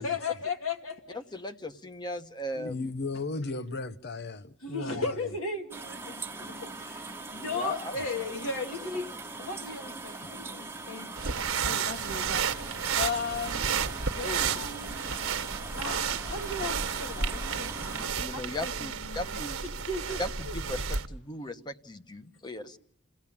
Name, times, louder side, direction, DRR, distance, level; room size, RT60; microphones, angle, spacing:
voice 1, 0.0-1.2 4.6-11.1 11.6-12.6 13.0-13.6 14.1-15.0 15.8-17.7 18.3-20.8 22.6-22.7, left 3 dB, 75° left, 2.5 m, -36 dB
voice 2, 1.1-2.9 7.3-7.9 14.2-14.5 18.2-19.8 20.2-22.8, left 1 dB, 20° left, 1.1 m, -38 dB
voice 3, 2.5-5.3, left 3 dB, 55° left, 0.8 m, -36 dB
sound 1, 5.7-18.1, right 3 dB, 10° right, 1.0 m, -41 dB
sound 2, 11.2-21.1, right 6 dB, 70° right, 1.4 m, -32 dB
28.5 x 16.5 x 8.7 m
head